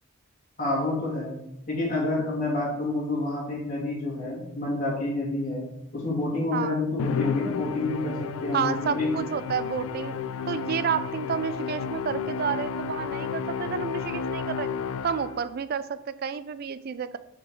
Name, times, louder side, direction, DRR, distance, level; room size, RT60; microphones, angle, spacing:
voice 1, 0.6-1.3 1.7-5.6 5.9-9.1, left 2 dB, 40° left, -6 dB, 2.6 m, -28 dB
Musical instrument, 7.0-15.6, left 6 dB, 85° left, 0.4 m, -32 dB
voice 2, 8.5-10.2 10.5-14.7 15.0-17.2, right 7 dB, 45° right, 14 dB, 0.3 m, -30 dB
5.7 x 4.9 x 4.5 m, 0.83 s
head